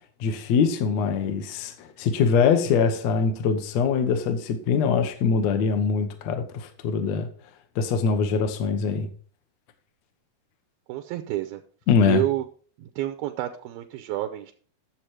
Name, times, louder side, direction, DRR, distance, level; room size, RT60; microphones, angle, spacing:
voice 1, 0.2-7.3 7.8-9.1 11.9-12.2, left 5 dB, 65° left, 1.9 m, -23 dB
voice 2, 10.9-11.6 12.1-12.4 13.0-14.5, right 14 dB, 80° right, 2.4 m, -29 dB
10.0 x 7.3 x 4.6 m
omnidirectional pair, 4.4 m